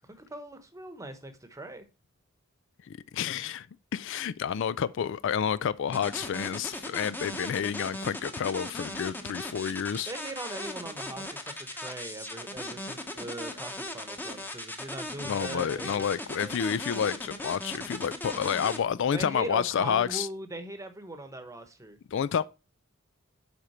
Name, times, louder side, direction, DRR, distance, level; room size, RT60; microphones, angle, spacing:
voice 1, 0.1-1.9 10.1-16.5 19.1-22.0, right 1 dB, 15° right, 1.0 m, -40 dB
voice 2, 2.9-3.7 3.9-10.1 15.2-20.3 22.1-22.4, left 8 dB, 65° left, 0.4 m, -29 dB
sound 1, 5.9-18.8, left 1 dB, 10° left, 1.0 m, -38 dB
8.0 x 5.1 x 4.2 m
head